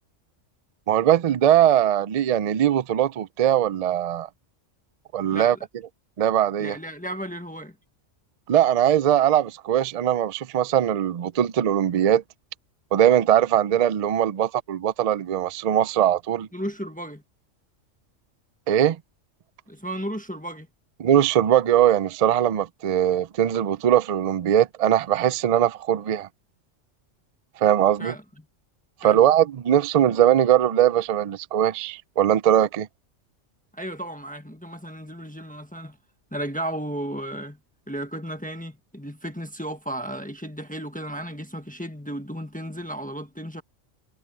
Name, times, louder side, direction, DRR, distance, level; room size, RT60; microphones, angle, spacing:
voice 1, 0.9-4.3 5.1-5.6 6.2-6.8 8.5-12.2 12.9-16.5 18.7-19.0 21.0-26.3 27.6-28.1 29.0-32.9, right 10 dB, 60° right, 0.4 m, -20 dB
voice 2, 6.6-7.7 16.5-17.2 19.7-20.7 28.0-28.2 29.0-29.2 33.7-36.0 36.3-37.6 37.9-43.6, right 1 dB, 5° left, 1.3 m, -34 dB
omnidirectional pair, 1.3 m